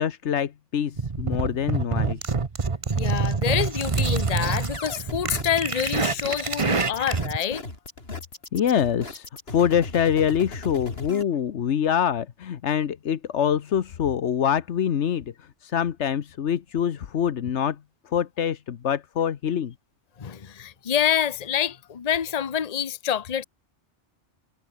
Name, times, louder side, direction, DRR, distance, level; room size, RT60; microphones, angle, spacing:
voice 1, 0.0-2.3 8.5-17.8 18.1-19.7, left 8 dB, 75° left, 1.2 m, -25 dB
sound 1, 1.0-7.4, right 4 dB, 30° right, 1.0 m, -26 dB
voice 2, 3.0-7.6 20.2-23.4, left 9 dB, 35° left, 0.9 m, -27 dB
sound 2, 3.9-11.2, left 2 dB, 55° left, 4.3 m, -38 dB
omnidirectional pair, 1.2 m